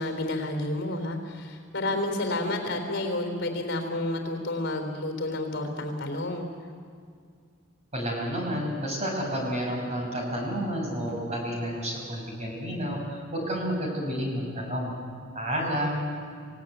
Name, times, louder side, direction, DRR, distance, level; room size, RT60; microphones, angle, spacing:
voice 1, 0.0-6.5, left 2 dB, 55° left, 4 dB, 3.7 m, -30 dB
voice 2, 7.9-14.9 15.3-16.2, equal, 30° right, 0 dB, 5.6 m, -30 dB
27.0 x 17.5 x 9.3 m, 2.2 s
head